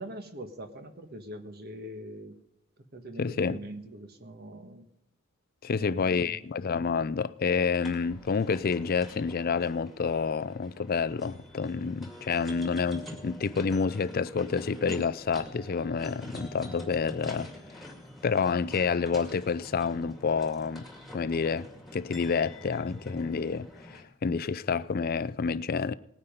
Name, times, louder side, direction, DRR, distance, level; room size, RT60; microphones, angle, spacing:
voice 1, 0.0-2.3 2.9-4.9 5.7-6.4, right 1 dB, 45° right, 1.5 m, -43 dB
voice 2, 3.2-3.6 5.6-17.5 17.8-17.9 18.2-20.9 21.1-25.9, left 5 dB, 45° left, 0.4 m, -29 dB
sound 1, 7.8-24.0, left 1 dB, ahead, 2.3 m, -46 dB
18.5 x 9.7 x 5.2 m
head